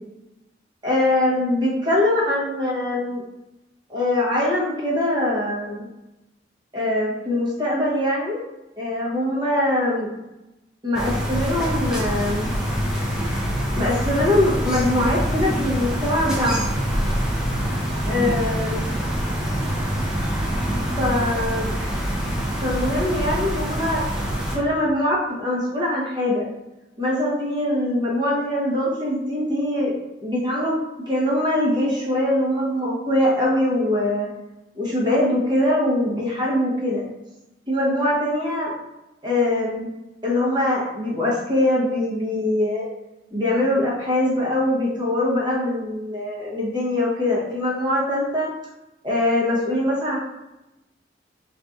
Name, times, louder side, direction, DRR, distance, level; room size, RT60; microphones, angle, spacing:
voice 1, 0.8-3.2 3.9-5.9 6.7-8.4 8.8-10.1 10.8-12.5 13.7-16.8 18.0-18.8 21.0-21.7 22.6-24.0 24.5-26.5 27.0-29.9 30.2-30.7 31.1-34.3 34.7-37.0 37.7-38.7 39.2-39.9 40.2-42.8 43.3-48.5 49.0-50.2, left 1 dB, 25° right, -5 dB, 0.9 m, -22 dB
sound 1, 10.9-24.6, equal, 5° right, 0.5 m, -25 dB
3.8 x 2.6 x 2.4 m, 0.97 s
head